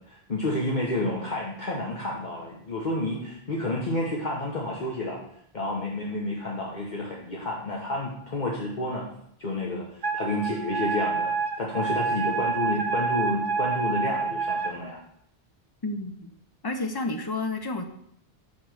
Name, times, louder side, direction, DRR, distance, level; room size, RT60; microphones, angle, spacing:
voice 1, 0.1-5.2 5.5-9.1 9.4-11.3 11.6-15.0, left 2 dB, 45° left, -3 dB, 1.1 m, -30 dB
Wind instrument woodwind instrument, 10.0-14.7, right 5 dB, 55° right, 0.7 m, -28 dB
voice 2, 15.8-16.3 16.6-17.8, left 2 dB, 30° left, 6 dB, 0.5 m, -30 dB
8.4 x 3.1 x 6.3 m, 0.72 s
omnidirectional pair, 1.1 m